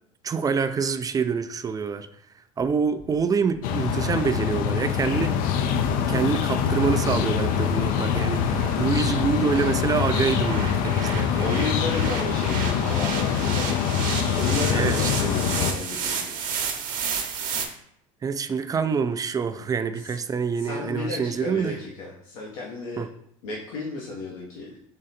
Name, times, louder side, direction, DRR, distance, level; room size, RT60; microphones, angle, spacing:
voice 1, 0.2-2.1 2.6-5.4 6.1-11.5 14.7-15.1 18.2-21.8 23.0-23.1, right 5 dB, 20° right, 10 dB, 0.4 m, -26 dB
sound 1, 3.0-17.7, right 6 dB, 55° right, 0.9 m, -34 dB
sound 2, 3.6-15.7, left 8 dB, 55° left, 0.5 m, -24 dB
voice 2, 11.4-13.8 14.3-16.4 20.0-20.1 20.6-23.1 23.4-24.7, left 3 dB, 75° left, -4 dB, 1.0 m, -33 dB
3.8 x 3.2 x 4.1 m, 0.71 s
hypercardioid pair, 75°, 17 cm